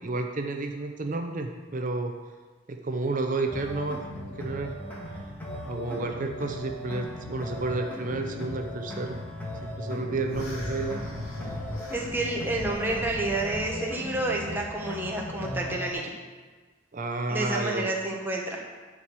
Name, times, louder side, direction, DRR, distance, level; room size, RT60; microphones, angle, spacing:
voice 1, 0.0-2.2 2.7-4.0 4.4-4.7 5.6-9.2 9.6-11.0 16.9-17.9, right 3 dB, 40° right, 4 dB, 0.6 m, -31 dB
sound 1, 3.5-15.9, left 1 dB, 10° left, 1.6 m, -37 dB
sound 2, 10.3-13.7, equal, 90° left, 2.4 m, -40 dB
voice 2, 11.9-16.0 17.3-18.6, right 2 dB, 10° right, -1 dB, 1.2 m, -29 dB
10.5 x 4.8 x 6.7 m, 1.4 s
head